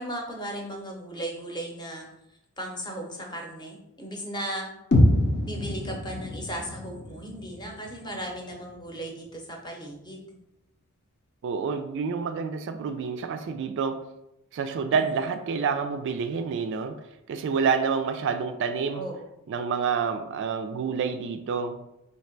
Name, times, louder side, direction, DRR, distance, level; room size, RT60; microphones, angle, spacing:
voice 1, 0.0-2.1 2.6-4.7 5.4-10.3 14.9-15.0 18.9-19.3, right 1 dB, 20° left, 1 dB, 0.7 m, -36 dB
sound 1, 4.9-8.9, left 1 dB, 50° left, 0.6 m, -26 dB
voice 2, 11.4-14.0 14.5-17.0 17.3-19.1 19.5-21.8, right 5 dB, 55° right, 8 dB, 0.3 m, -28 dB
3.2 x 2.8 x 4.4 m, 0.86 s
head